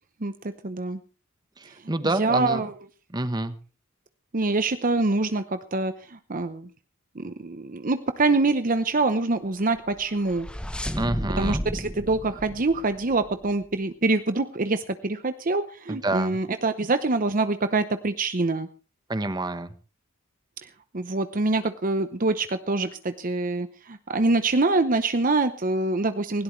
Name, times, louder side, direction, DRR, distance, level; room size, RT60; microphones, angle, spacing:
voice 1, 0.2-1.0 1.8-2.7 4.3-6.7 7.1-10.5 11.4-18.7 20.6-20.7 20.9-26.4, right 3 dB, 40° right, 10 dB, 0.8 m, -25 dB
voice 2, 1.6-2.6 3.1-3.5 10.9-11.6 15.9-16.4 19.1-19.7, right 2 dB, 20° right, 11 dB, 1.1 m, -28 dB
sound 1, 9.9-13.5, equal, 5° left, 1.0 m, -33 dB
19.5 x 17.0 x 3.2 m, 0.36 s
head